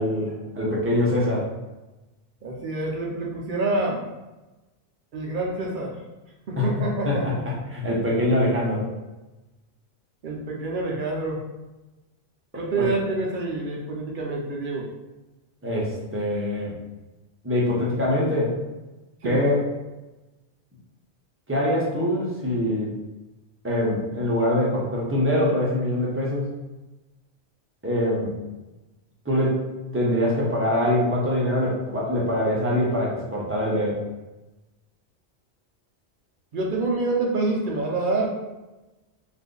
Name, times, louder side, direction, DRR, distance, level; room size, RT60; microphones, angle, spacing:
voice 1, 0.0-1.5 6.6-6.7 7.0-7.3 7.7-8.9 12.8-12.9 15.6-16.7 17.4-18.5 19.2-19.6 21.5-22.9 23.6-26.5 27.8-28.3 29.2-29.6 29.9-34.0, left 1 dB, 15° right, -5 dB, 0.6 m, -23 dB
voice 2, 2.4-4.0 5.1-6.0 6.5-7.4 10.2-11.5 12.5-14.9 19.2-19.5 36.5-38.4, right 2 dB, 55° right, -1 dB, 0.6 m, -27 dB
2.6 x 2.5 x 3.6 m, 1.1 s
omnidirectional pair, 1.1 m